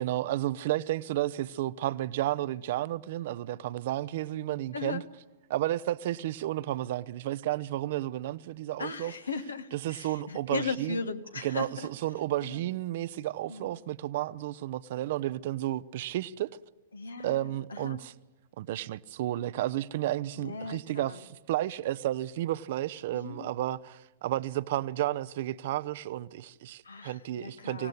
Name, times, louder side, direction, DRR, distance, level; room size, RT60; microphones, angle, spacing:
voice 1, 0.0-5.0 5.5-9.1 9.7-11.0 11.4-16.5 17.2-18.1 18.6-27.9, right 14 dB, 50° right, 0.7 m, -32 dB
voice 2, 4.7-5.0 8.8-11.9 12.4-12.6 13.5-13.7 16.9-18.0 20.4-21.2 23.1-23.5 26.8-27.9, left 5 dB, 75° left, 1.6 m, -37 dB
25.0 x 17.5 x 9.6 m
figure-of-eight pair, 105°, 0 cm